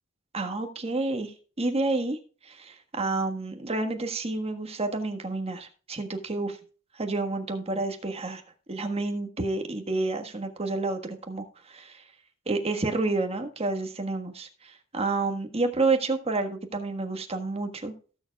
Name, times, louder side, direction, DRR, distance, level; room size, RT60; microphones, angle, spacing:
voice 1, 0.3-2.2 2.5-6.6 7.0-8.4 8.7-12.0 12.5-17.9, right 3 dB, 30° right, 5 dB, 1.5 m, -29 dB
18.0 x 7.0 x 2.3 m, 0.39 s
head